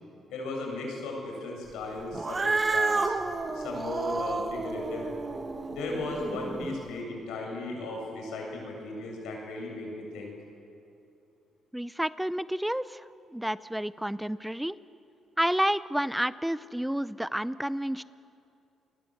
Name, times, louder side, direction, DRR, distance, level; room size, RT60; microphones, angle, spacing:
voice 1, 0.3-3.2 3.5-5.1 5.7-10.3, left 2 dB, 90° left, 0 dB, 7.7 m, -36 dB
Cat, 2.1-6.8, right 3 dB, 30° right, 1.6 m, -31 dB
voice 2, 11.7-14.8 15.4-18.0, equal, 5° right, 16 dB, 0.5 m, -30 dB
29.0 x 21.0 x 7.9 m, 2.7 s
cardioid pair, 90°, 0 cm